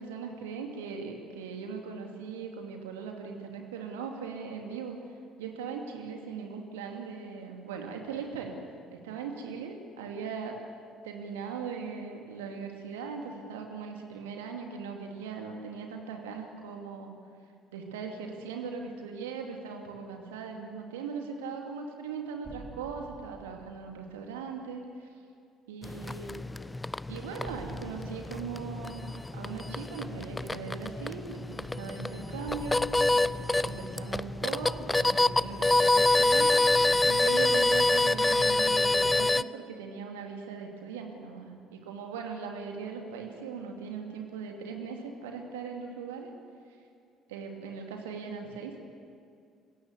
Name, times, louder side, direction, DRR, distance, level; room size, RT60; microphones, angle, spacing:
voice 1, 0.0-4.9 5.4-8.6 8.9-10.6 11.0-17.1 17.7-25.1 25.7-26.4 27.1-32.8 33.2-36.5 37.0-46.3 47.3-48.9, right 5 dB, 75° right, 2 dB, 2.5 m, -39 dB
sound 1, 22.4-24.5 27.4-29.5 32.4-35.0, right 2 dB, 25° right, 4.8 m, -49 dB
sound 2, 25.8-39.4, left 2 dB, 15° left, 0.5 m, -27 dB
22.0 x 16.0 x 8.2 m, 2.3 s
figure-of-eight pair, 55°, 0 cm